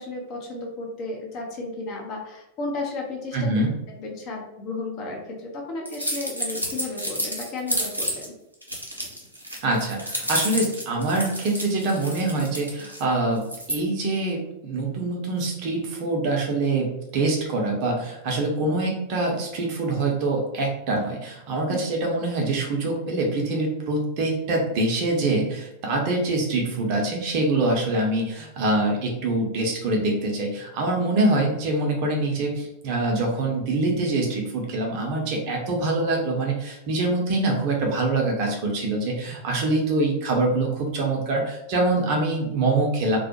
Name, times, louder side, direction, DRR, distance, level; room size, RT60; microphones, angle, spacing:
voice 1, 0.0-3.5 4.0-8.3 21.7-21.8, left 2 dB, 40° left, 1 dB, 0.5 m, -33 dB
voice 2, 3.3-3.7 9.6-43.2, right 2 dB, 45° right, 0 dB, 0.6 m, -24 dB
sound 1, 5.9-8.3 8.6-13.0 13.4-13.8, equal, 90° right, 0.5 m, -30 dB
2.2 x 2.0 x 2.8 m, 0.88 s
figure-of-eight pair, 90°, 0 cm